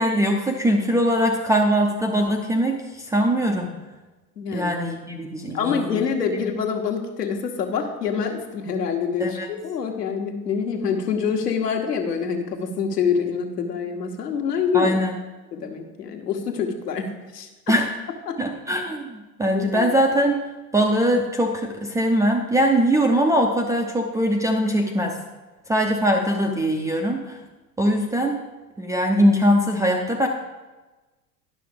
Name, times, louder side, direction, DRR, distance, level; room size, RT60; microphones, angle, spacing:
voice 1, 0.0-3.7 4.5-6.0 9.2-9.5 14.7-15.1 17.7-17.9 18.4-20.4 20.7-25.1 25.7-27.4 27.8-28.4 28.8-30.3, equal, 5° right, 1 dB, 0.4 m, -21 dB
voice 2, 4.4-4.7 5.5-15.0 15.5-17.5 18.3-18.4 19.5-19.9, left 6 dB, 70° left, 3 dB, 1.4 m, -26 dB
10.5 x 6.1 x 5.0 m, 1.2 s
figure-of-eight pair, 80°, 49 cm